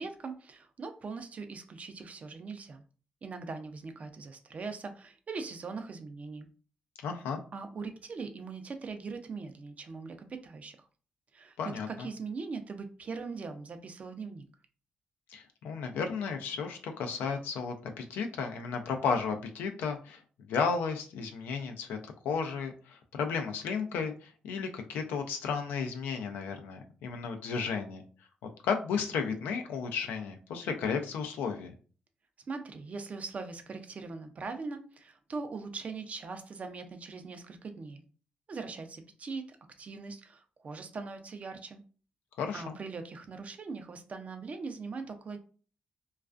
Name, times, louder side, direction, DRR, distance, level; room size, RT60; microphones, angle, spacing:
voice 1, 0.0-2.8 3.2-6.5 7.5-10.8 11.3-11.6 11.9-14.5 32.5-38.0 38.5-41.8 42.5-45.4, right 4 dB, 45° right, 7 dB, 0.5 m, -41 dB
voice 2, 7.0-7.4 11.6-12.1 15.3-20.2 20.5-28.0 28.6-31.7 42.4-42.8, left 5 dB, 85° left, 5 dB, 0.4 m, -33 dB
2.3 x 2.3 x 2.4 m, 0.39 s
supercardioid pair, 65°, 3 cm